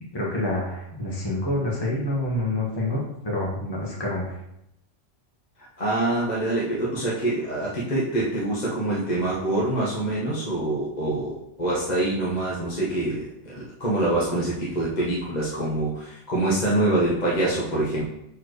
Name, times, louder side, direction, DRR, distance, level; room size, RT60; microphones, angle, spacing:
voice 1, 0.1-4.3, left 1 dB, 20° left, -5 dB, 1.4 m, -27 dB
voice 2, 5.8-18.0, right 1 dB, 40° left, -7 dB, 1.2 m, -25 dB
7.2 x 4.3 x 3.2 m, 0.80 s
omnidirectional pair, 1.2 m